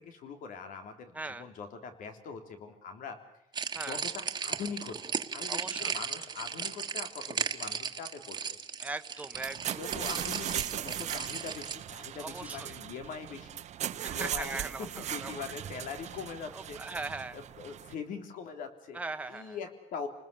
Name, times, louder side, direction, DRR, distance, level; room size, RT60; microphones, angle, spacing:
voice 1, 0.0-3.2 3.8-8.4 9.7-13.6 14.1-16.8 17.3-19.0 19.3-20.1, left 6 dB, 85° left, 7 dB, 3.4 m, -42 dB
voice 2, 1.1-1.5 3.7-4.0 5.5-6.0 8.8-9.8 12.2-12.8 14.0-15.4 16.5-17.4 18.9-19.6, right 3 dB, 10° right, 7 dB, 1.3 m, -40 dB
sound 1, 3.5-11.8, right 6 dB, 30° right, 1.4 m, -36 dB
sound 2, 9.3-17.9, right 11 dB, 60° right, 1.0 m, -38 dB
30.0 x 20.5 x 6.9 m, 0.78 s
cardioid pair, 165°, 14 cm